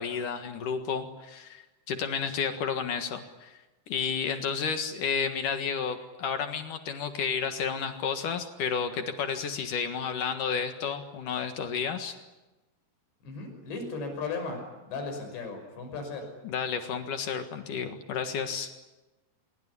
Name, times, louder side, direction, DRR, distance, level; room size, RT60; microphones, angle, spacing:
voice 1, 0.0-3.6 3.9-12.2 16.4-18.7, left 6 dB, 55° left, 7 dB, 2.8 m, -31 dB
voice 2, 13.2-16.3, left 4 dB, 85° left, 5 dB, 8.1 m, -36 dB
26.0 x 22.5 x 9.9 m, 1.1 s
omnidirectional pair, 4.9 m